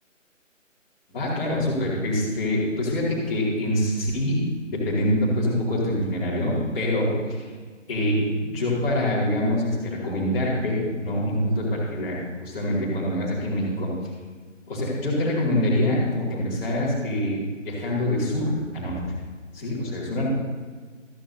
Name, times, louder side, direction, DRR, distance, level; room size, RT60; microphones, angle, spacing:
voice 1, 1.1-4.4 4.7-7.4 7.9-13.9 14.7-19.0 19.5-20.3, left 1 dB, 10° left, -12 dB, 2.6 m, -25 dB
14.5 x 13.5 x 2.8 m, 1.5 s
figure-of-eight pair, 160°, 39 cm